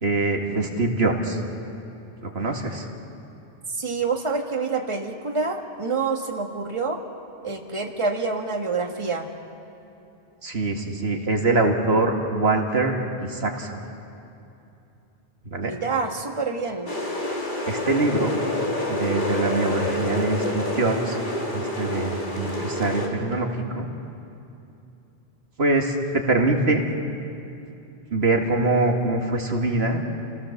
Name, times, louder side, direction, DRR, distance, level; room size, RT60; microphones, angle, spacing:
voice 1, 0.0-1.4 2.2-2.9 10.4-13.0 13.2-13.8 15.5-15.7 17.7-18.4 18.9-21.2 21.5-23.9 25.6-26.8 28.1-30.0, right 2 dB, 80° right, 2 dB, 2.1 m, -23 dB
voice 2, 3.7-7.0 7.4-9.3 15.6-16.9, right 4 dB, 30° right, 2 dB, 1.7 m, -27 dB
sound 1, 16.9-23.1, left 1 dB, 55° left, 2.8 m, -28 dB
29.5 x 17.0 x 7.2 m, 2.8 s
omnidirectional pair, 1.0 m